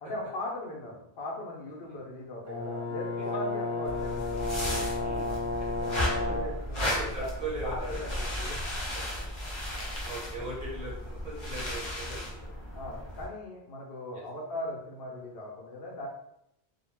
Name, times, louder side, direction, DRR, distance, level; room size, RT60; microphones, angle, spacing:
voice 1, 0.0-4.5 4.9-5.4 5.8-7.3 7.6-8.6 10.4-10.5 12.7-16.1, left 1 dB, 75° left, -2 dB, 0.9 m, -39 dB
Brass instrument, 2.4-6.6, left 3 dB, 20° right, 0.5 m, -32 dB
sound 1, 3.8-13.3, left 1 dB, 35° left, 0.6 m, -35 dB
voice 2, 5.0-5.3 5.6-5.7 6.7-8.0 9.2-9.3 10.0-12.6 14.1-14.2, right 2 dB, 45° right, -5 dB, 1.1 m, -40 dB
2.3 x 2.2 x 3.2 m, 0.77 s
omnidirectional pair, 1.0 m